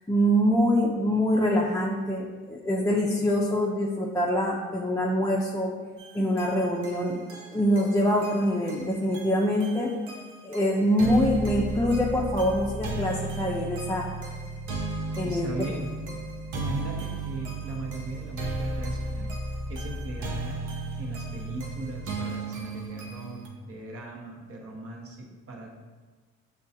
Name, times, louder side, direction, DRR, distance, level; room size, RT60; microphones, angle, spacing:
voice 1, 0.1-5.7 6.1-7.2 7.5-9.9 10.4-14.1 15.2-15.5, equal, 10° left, -4 dB, 0.4 m, -24 dB
sound 1, 6.0-23.5, right 2 dB, 85° right, 0.7 m, -34 dB
voice 2, 15.3-15.9 16.5-19.3 19.7-20.6 21.0-25.7, right 2 dB, 50° right, 0 dB, 0.9 m, -38 dB
6.1 x 2.3 x 2.7 m, 1.3 s
cardioid pair, 90°, 30 cm